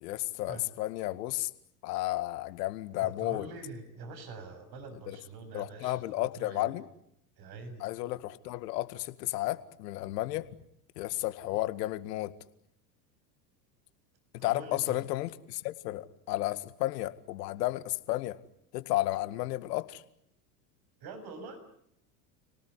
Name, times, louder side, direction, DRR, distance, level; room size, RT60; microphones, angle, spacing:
voice 1, 0.0-1.5 1.8-3.5 5.1-5.2 5.5-6.9 7.8-10.4 11.0-12.3 14.4-18.4 18.7-20.0, left 17 dB, 75° left, 12 dB, 2.0 m, -33 dB
voice 2, 3.0-6.7 7.4-7.9 14.4-15.0 21.0-21.6, right 3 dB, 45° right, 9 dB, 7.2 m, -45 dB
30.0 x 19.0 x 9.9 m, 0.74 s
hypercardioid pair, 95°, 49 cm